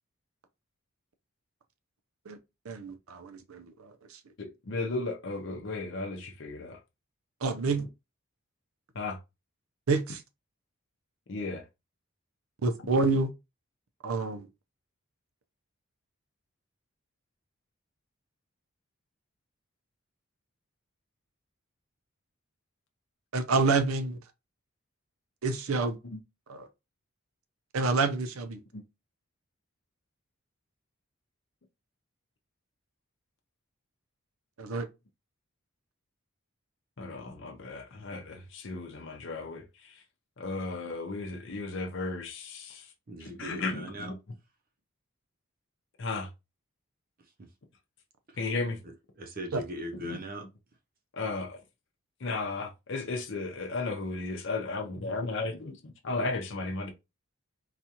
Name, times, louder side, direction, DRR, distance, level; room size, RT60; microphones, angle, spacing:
voice 1, 2.6-4.2 7.4-7.9 9.9-10.2 12.6-13.3 14.0-14.4 23.3-24.2 25.4-26.0 26.5-26.7 27.7-28.6 34.6-34.9 49.5-49.6, right 3 dB, 85° right, 0.6 m, -28 dB
voice 2, 4.4-6.8 8.9-9.2 11.3-11.6 26.1-26.2 28.7-28.8 37.0-40.0 40.4-42.9 43.2-44.2 46.0-46.3 48.4-48.8 50.0-50.2 51.1-51.6 52.2-56.9, left 3 dB, 60° left, 0.6 m, -35 dB
voice 3, 43.1-44.1 47.4-47.5 48.3-48.4 48.8-50.4, right 1 dB, 40° right, 0.6 m, -40 dB
4.1 x 2.4 x 2.8 m
head